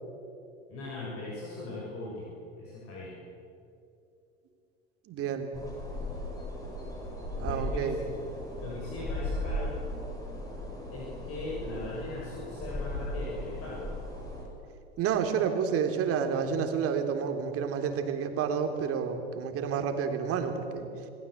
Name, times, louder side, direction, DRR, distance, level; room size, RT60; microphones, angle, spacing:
voice 1, 0.7-3.2 7.4-8.0 8.6-9.7 10.9-13.9, left 2 dB, 45° left, -4 dB, 6.7 m, -39 dB
voice 2, 5.1-5.5 7.3-8.0 15.0-20.9, right 7 dB, 45° right, 6 dB, 3.4 m, -30 dB
sound 1, 5.5-14.4, left 1 dB, 10° left, 7.4 m, -37 dB
28.0 x 19.5 x 8.0 m, 2.7 s
hypercardioid pair, 80°, 32 cm